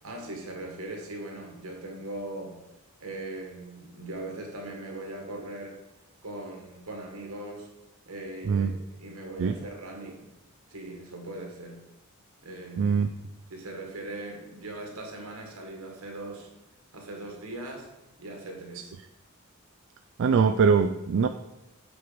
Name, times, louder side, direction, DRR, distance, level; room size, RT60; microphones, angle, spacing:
voice 1, 0.0-2.6 3.0-5.8 6.2-7.7 8.1-10.3 10.7-11.8 12.4-13.0 13.5-16.5 16.9-17.9 18.2-18.9, right 2 dB, 80° right, 2 dB, 1.8 m, -40 dB
voice 2, 12.8-13.1 20.2-21.3, right 5 dB, 60° right, 8 dB, 0.4 m, -22 dB
8.0 x 4.7 x 5.1 m, 0.93 s
head